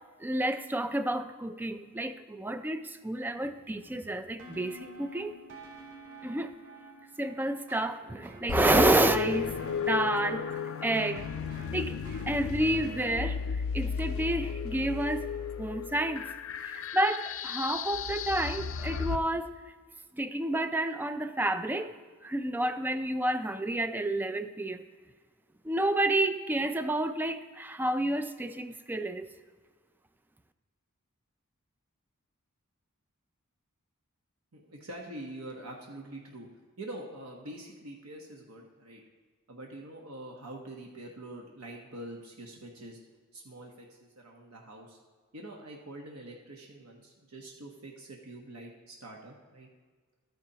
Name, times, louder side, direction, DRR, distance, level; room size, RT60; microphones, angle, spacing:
voice 1, 0.2-5.4 6.2-6.5 7.2-11.3 11.7-13.4 13.7-15.3 15.6-16.3 16.5-19.5 20.1-21.9 22.2-24.9 25.6-29.3, right 1 dB, 10° right, 10 dB, 0.3 m, -30 dB
sound 1, 4.4-13.3, right 1 dB, 55° right, 3.1 m, -48 dB
sound 2, 8.5-19.2, left 6 dB, 65° left, 0.4 m, -34 dB
voice 2, 34.5-36.5 36.8-39.0 39.5-43.0 43.3-45.0 45.3-49.7, right 1 dB, 75° right, 0 dB, 1.1 m, -45 dB
13.0 x 9.3 x 2.8 m, 1.5 s
head